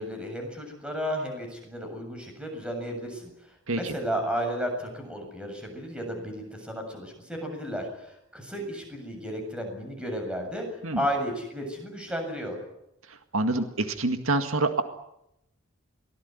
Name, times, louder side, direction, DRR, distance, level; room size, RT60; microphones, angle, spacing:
voice 1, 0.0-3.3 3.7-10.7 10.9-12.6, equal, 5° right, 3 dB, 7.5 m, -33 dB
voice 2, 13.1-14.8, right 2 dB, 75° right, 7 dB, 2.0 m, -27 dB
23.5 x 18.5 x 9.6 m, 0.82 s
head